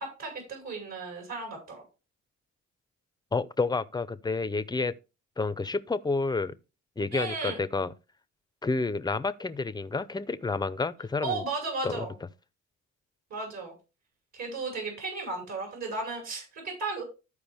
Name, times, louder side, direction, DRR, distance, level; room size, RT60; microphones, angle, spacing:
voice 1, 0.0-1.8 7.1-7.6 11.2-12.1 13.3-13.7 14.3-17.0, right 3 dB, 65° right, 5.8 m, -35 dB
voice 2, 3.3-4.9 5.4-6.6 7.0-7.9 8.6-11.4 11.8-12.1, left 3 dB, 15° left, 0.6 m, -29 dB
13.5 x 4.8 x 3.5 m
cardioid pair, 90°, 30 cm